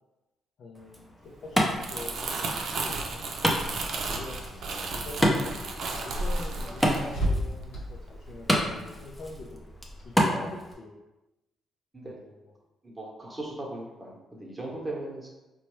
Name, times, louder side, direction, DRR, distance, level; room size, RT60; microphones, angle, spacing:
voice 1, 0.6-2.9 4.1-4.4 4.9-5.6 5.9-9.6 10.0-10.9 12.0-12.3 14.6-14.8, left 2 dB, 60° left, -3 dB, 0.6 m, -43 dB
Wood, 0.7-10.7, equal, ahead, 0.6 m, -31 dB
Crumpling crinkling, 1.5-7.9 8.3-8.6, right 3 dB, 65° right, 0.5 m, -34 dB
Car / Engine, 1.7-10.1, equal, 85° left, 0.9 m, -38 dB
voice 2, 12.8-15.3, right 2 dB, 15° right, -3 dB, 1.0 m, -38 dB
4.1 x 2.2 x 3.1 m, 1.0 s
cardioid pair, 90°, 0 cm